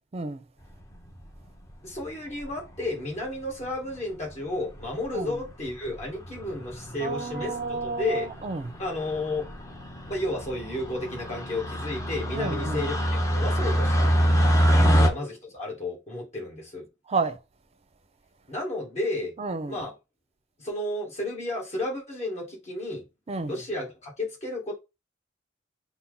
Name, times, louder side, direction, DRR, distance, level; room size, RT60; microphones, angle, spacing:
voice 1, 0.1-0.4 5.1-5.4 7.0-8.7 12.3-12.8 14.8-15.0 17.1-17.4 19.4-19.8 23.3-23.6, right 3 dB, 30° right, 0.5 m, -31 dB
sound 1, 0.9-1.4 2.4-2.8 3.6-3.7 3.9-4.0 4.3-4.4 4.7-5.0 5.5-5.7 6.0-15.1, equal, 15° left, 0.7 m, -26 dB
voice 2, 1.8-8.3 8.8-9.5 10.1-14.1 14.7-16.9 18.5-19.3 19.7-19.9 20.6-23.1 23.5-24.7, left 2 dB, 35° left, 1.7 m, -32 dB
5.7 x 2.0 x 3.9 m
head